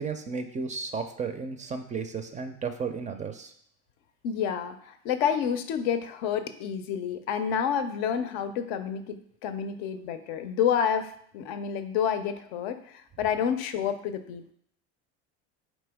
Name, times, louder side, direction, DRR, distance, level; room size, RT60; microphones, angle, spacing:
voice 1, 0.0-3.5, right 5 dB, 25° right, 7 dB, 0.4 m, -33 dB
voice 2, 4.2-14.5, left 8 dB, 70° left, 9 dB, 0.5 m, -29 dB
4.3 x 3.0 x 3.4 m, 0.65 s
hypercardioid pair, 85°, 32 cm